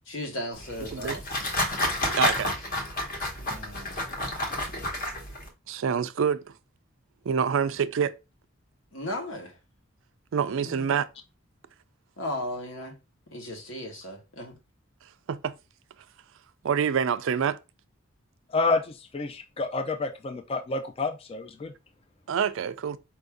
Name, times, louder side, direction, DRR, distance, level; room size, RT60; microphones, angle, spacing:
voice 1, 0.1-1.5 3.4-4.0 4.5-4.8 8.9-9.6 10.6-10.9 12.2-13.0 13.3-14.6, left 1 dB, 70° left, 1.2 m, -36 dB
sound 1, 0.5-5.5, left 1 dB, 45° left, 1.1 m, -30 dB
voice 2, 2.2-2.5 5.7-6.4 7.3-8.1 10.3-11.1 15.3-15.5 16.6-17.6 22.3-23.0, right 7 dB, 70° right, 0.4 m, -26 dB
voice 3, 19.1-21.7, left 3 dB, 30° left, 0.4 m, -28 dB
4.6 x 2.6 x 3.4 m
head